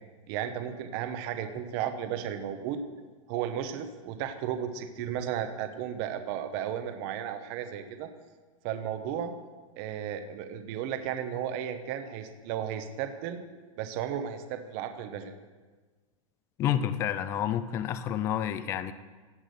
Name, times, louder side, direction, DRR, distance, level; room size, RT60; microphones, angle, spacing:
voice 1, 0.3-2.8 3.3-8.1 8.6-9.3 9.8-13.4 13.8-15.3, right 9 dB, 35° right, 8 dB, 0.9 m, -34 dB
voice 2, 16.6-18.9, left 10 dB, 15° left, 12 dB, 0.3 m, -29 dB
16.0 x 6.0 x 6.7 m, 1.3 s
supercardioid pair, 165°, 18 cm